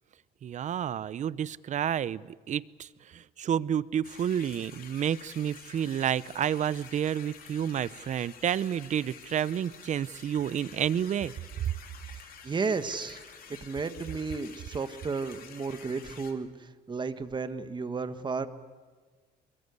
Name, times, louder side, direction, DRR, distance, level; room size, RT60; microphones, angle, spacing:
voice 1, 0.4-11.3, right 9 dB, 45° right, 19 dB, 0.7 m, -30 dB
sound 1, 4.0-16.3, left 7 dB, 55° left, 3.0 m, -50 dB
voice 2, 12.2-13.2 13.5-18.5, right 4 dB, 25° right, 11 dB, 1.5 m, -33 dB
24.0 x 22.5 x 8.3 m, 1.5 s
cardioid pair, 110°, 17 cm